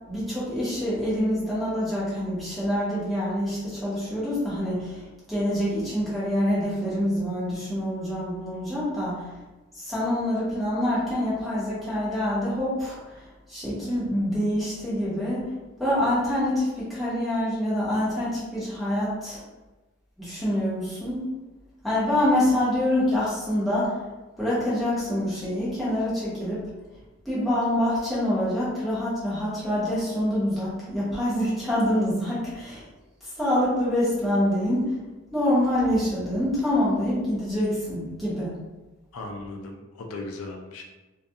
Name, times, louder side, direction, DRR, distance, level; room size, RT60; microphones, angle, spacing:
voice 1, 0.1-5.0 5.3-9.3 9.8-13.0 13.5-15.5 15.8-19.4 20.2-21.2 21.8-24.0 24.4-26.7 27.3-32.8 33.4-35.0 35.3-38.5, left 1 dB, ahead, -11 dB, 0.9 m, -26 dB
voice 2, 39.1-40.8, left 2 dB, 85° left, 2 dB, 0.4 m, -37 dB
2.3 x 2.3 x 2.7 m, 1.1 s
head